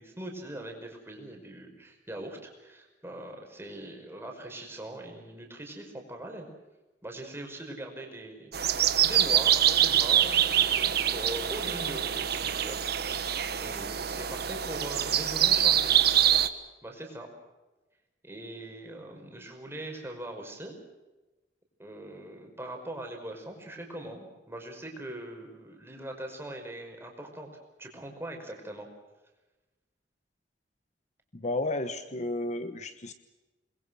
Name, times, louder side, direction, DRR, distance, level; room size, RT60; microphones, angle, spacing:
voice 1, 0.0-6.5 7.0-8.8 9.0-12.8 13.1-16.0 16.8-17.3 18.2-20.7 21.8-27.5 27.8-28.9, right 1 dB, 15° right, 2 dB, 5.2 m, -41 dB
sound 1, 8.5-16.5, right 10 dB, 60° right, 1.3 m, -25 dB
voice 2, 31.3-33.1, left 2 dB, 40° left, 9 dB, 1.1 m, -32 dB
28.0 x 21.5 x 6.3 m, 1.1 s
head